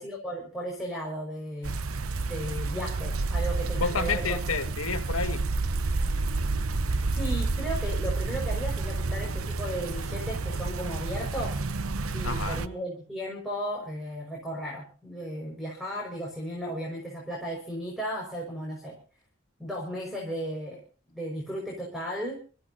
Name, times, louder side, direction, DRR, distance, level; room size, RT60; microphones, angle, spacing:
voice 1, 0.0-1.7 2.2-4.4 7.1-11.6 12.1-19.0 19.6-20.8 21.1-22.4, equal, ahead, 5.6 m, -35 dB
sound 1, 1.6-12.7, right 3 dB, 85° right, 0.9 m, -29 dB
voice 2, 3.8-5.4 12.2-12.6, left 4 dB, 80° left, 1.9 m, -30 dB
29.5 x 14.5 x 2.9 m
head